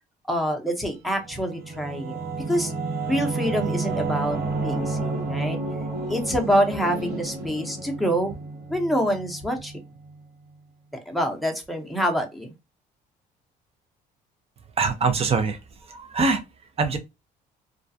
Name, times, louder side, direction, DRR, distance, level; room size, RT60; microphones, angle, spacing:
voice 1, 0.3-2.2 2.5-2.7 3.1-5.6 6.1-8.4 8.7-9.7 11.1-12.5, equal, ahead, 0.7 m, -26 dB
Singing / Musical instrument, 1.0-10.2, right 3 dB, 60° right, 1.1 m, -31 dB
voice 2, 14.8-15.6 15.9-16.4 16.8-17.0, right 4 dB, 35° right, 0.6 m, -23 dB
2.4 x 2.2 x 2.6 m
cardioid pair, 110°, 17 cm